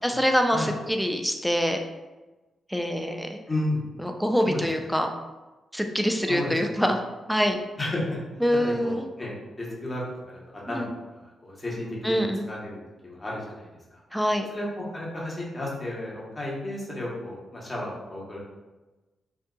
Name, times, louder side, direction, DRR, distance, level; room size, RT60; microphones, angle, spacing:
voice 1, 0.0-1.8 2.7-3.4 4.0-5.1 5.7-7.0 7.3-7.6 8.4-9.1 10.7-10.9 12.0-12.5 14.1-14.5, equal, ahead, 4 dB, 0.4 m, -25 dB
voice 2, 3.5-3.8 4.4-4.6 6.3-6.8 7.8-8.2 8.6-10.9 11.1-13.7 14.5-14.7 14.9-18.4, left 1 dB, 25° left, -4 dB, 1.0 m, -33 dB
3.7 x 2.6 x 2.3 m, 1.1 s
cardioid pair, 85°, 0 cm